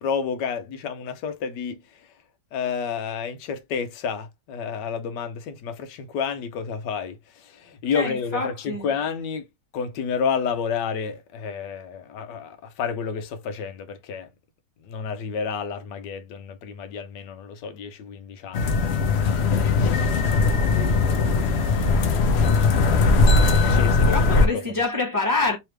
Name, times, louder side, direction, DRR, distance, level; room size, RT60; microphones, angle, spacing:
voice 1, 0.0-2.1 2.5-9.5 9.7-14.3 14.8-20.1 21.4-22.2 23.6-24.6, left 6 dB, 80° left, 1.2 m, -31 dB
voice 2, 7.9-8.9 20.7-21.0 24.0-25.6, left 3 dB, 15° right, 0.8 m, -26 dB
sound 1, 18.5-24.5, left 3 dB, 60° left, 0.7 m, -19 dB
3.3 x 3.2 x 3.2 m
omnidirectional pair, 1.9 m